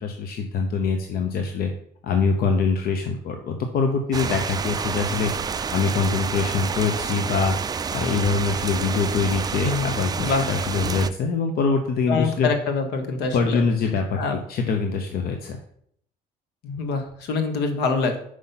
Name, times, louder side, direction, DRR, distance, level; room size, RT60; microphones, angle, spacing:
voice 1, 0.0-1.7 2.0-5.3 5.7-7.6 7.9-12.5 13.3-15.6, left 4 dB, 65° left, 4 dB, 0.8 m, -24 dB
sound 1, 4.1-11.1, right 6 dB, 25° right, 0.3 m, -29 dB
voice 2, 9.6-9.9 10.2-10.5 12.1-13.6 14.2-14.3 16.6-18.2, left 4 dB, 80° left, 6 dB, 1.3 m, -25 dB
5.6 x 4.9 x 5.7 m, 0.67 s
cardioid pair, 110°, 17 cm